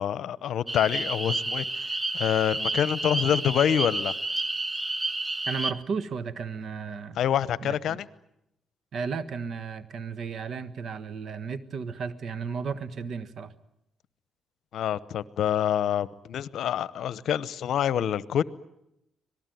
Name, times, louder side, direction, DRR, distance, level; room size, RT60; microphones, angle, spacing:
voice 1, 0.0-4.1 7.1-8.1 14.7-18.4, left 10 dB, 70° left, 18 dB, 0.8 m, -26 dB
sound 1, 0.7-5.7, right 2 dB, 20° right, 1.4 m, -30 dB
voice 2, 5.4-7.2 7.6-8.0 8.9-13.5, right 5 dB, 65° right, 16 dB, 1.4 m, -34 dB
26.0 x 19.0 x 9.3 m, 0.83 s
supercardioid pair, 60°, 0 cm